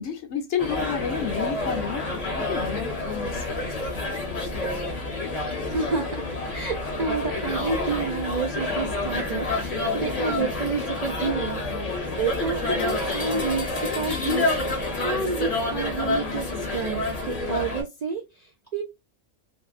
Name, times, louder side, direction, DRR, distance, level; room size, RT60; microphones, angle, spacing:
voice 1, 0.0-2.1 2.5-3.4, left 7 dB, 65° left, 0.8 m, -30 dB
sound 1, 0.6-17.8, left 2 dB, 35° left, 0.7 m, -28 dB
voice 2, 5.3-14.8 15.0-18.8, right 5 dB, 90° right, 0.3 m, -30 dB
2.6 x 2.2 x 2.3 m
omnidirectional pair, 1.4 m